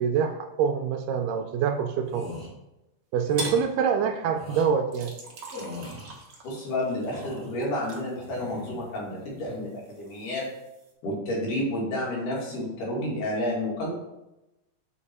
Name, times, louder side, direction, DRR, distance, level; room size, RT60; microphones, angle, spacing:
voice 1, 0.0-2.3 3.1-5.1, right 7 dB, 85° right, 5 dB, 2.2 m, -25 dB
sound 1, 2.0-2.5 3.2-3.6 4.3-4.7 5.5-6.1 6.8-7.6 8.1-8.8 9.2-9.6, left 1 dB, 25° right, 2.9 m, -40 dB
sound 2, 3.4-3.7 4.9-9.2 9.5-10.9, right 2 dB, 65° right, 1.0 m, -41 dB
voice 2, 6.4-10.5 11.0-13.9, left 1 dB, 75° left, -4 dB, 3.4 m, -30 dB
7.0 x 5.0 x 4.2 m, 0.94 s
omnidirectional pair, 3.8 m